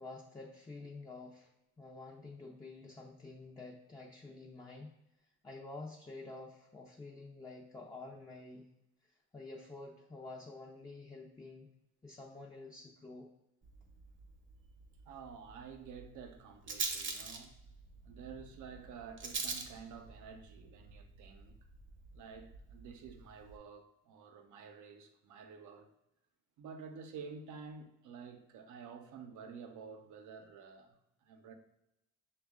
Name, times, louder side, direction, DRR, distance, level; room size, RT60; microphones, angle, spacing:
voice 1, 0.0-1.5 1.8-8.7 9.0-11.7 12.0-13.3, left 3 dB, 15° left, 0.5 m, -49 dB
Rattle, 13.6-23.6, right 4 dB, 40° right, 0.7 m, -45 dB
voice 2, 15.0-17.5 18.0-21.6 22.1-25.9 26.6-31.5, right 6 dB, 80° right, 0.6 m, -50 dB
6.0 x 2.3 x 3.6 m
cardioid pair, 90°, 30 cm